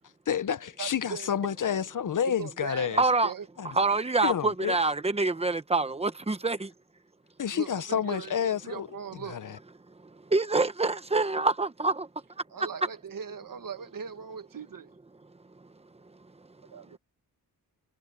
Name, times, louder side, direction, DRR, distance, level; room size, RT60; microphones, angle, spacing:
voice 1, 0.3-3.0 3.6-3.7 4.2-4.8 7.4-8.9 9.3-9.6, left 8 dB, 55° left, 0.7 m, -29 dB
voice 2, 0.8-1.3 2.3-3.5 7.5-9.4 12.5-14.9 16.7-17.0, right 6 dB, 60° right, 1.4 m, -40 dB
voice 3, 2.9-3.3 3.7-6.7 10.3-12.1, right 3 dB, 15° right, 0.9 m, -26 dB
wide cardioid pair, 175°, 38 cm